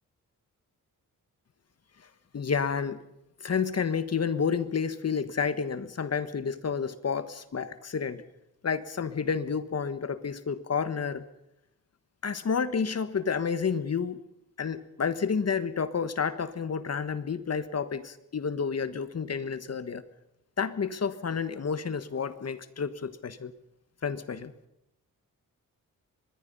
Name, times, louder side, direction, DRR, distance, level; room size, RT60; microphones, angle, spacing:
voice 1, 2.3-3.0 3.4-8.2 8.6-11.2 12.2-14.2 14.6-20.0 20.6-23.5 24.0-24.5, left 6 dB, 50° left, 13 dB, 1.5 m, -30 dB
25.0 x 20.5 x 5.5 m, 0.84 s
cardioid pair, 100°, 34 cm